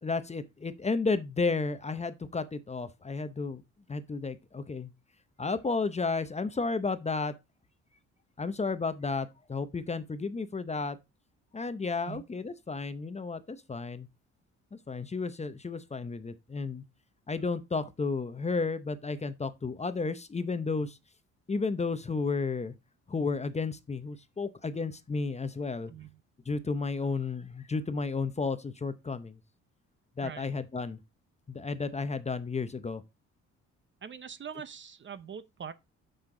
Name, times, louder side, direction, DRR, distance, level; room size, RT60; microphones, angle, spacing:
voice 1, 0.0-3.6 3.9-4.9 5.4-7.3 8.4-11.0 11.5-14.1 14.7-16.8 17.3-21.0 21.5-22.7 23.1-25.9 26.5-29.4 30.2-31.0 31.5-33.0, left 4 dB, 20° left, 0.7 m, -32 dB
voice 2, 25.9-26.2 30.2-30.5 34.0-35.7, right 7 dB, 40° right, 0.7 m, -43 dB
6.6 x 5.9 x 3.8 m
cardioid pair, 90°, 30 cm